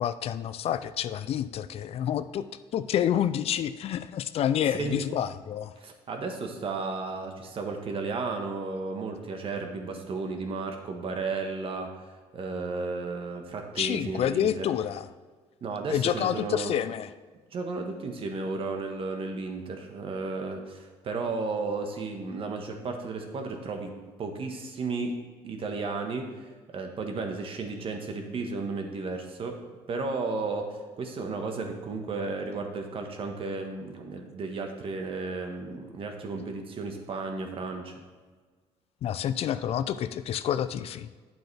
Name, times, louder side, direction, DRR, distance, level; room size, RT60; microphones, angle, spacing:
voice 1, 0.0-2.5 2.7-5.7 13.8-15.1 15.9-17.1 39.0-41.1, left 10 dB, 55° left, 13 dB, 0.4 m, -28 dB
voice 2, 5.8-14.7 15.6-16.7 17.5-23.9 24.2-25.2 25.4-29.6 29.9-37.9, right 3 dB, 50° right, 4 dB, 1.4 m, -34 dB
9.3 x 7.8 x 3.4 m, 1.4 s
cardioid pair, 95°, 12 cm